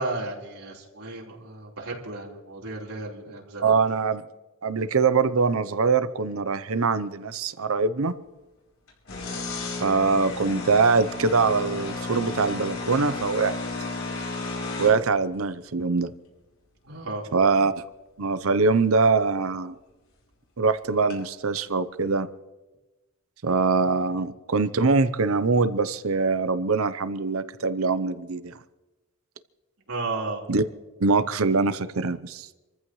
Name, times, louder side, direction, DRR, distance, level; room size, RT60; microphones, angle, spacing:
voice 1, 0.0-3.7 16.9-17.2 29.9-30.4, right 2 dB, 90° right, -3 dB, 4.2 m, -33 dB
voice 2, 3.6-4.2 4.6-8.1 9.8-13.6 14.8-16.1 17.3-17.8 18.2-19.7 20.6-22.3 23.4-28.5 30.5-30.6 31.0-32.5, right 4 dB, 75° right, 13 dB, 0.8 m, -23 dB
sound 1, 8.9-15.1 18.6-18.7 19.0-19.1 21.1-21.2 21.6-21.7, left 3 dB, 80° left, 5.0 m, -33 dB
28.5 x 14.5 x 3.2 m, 1.1 s
head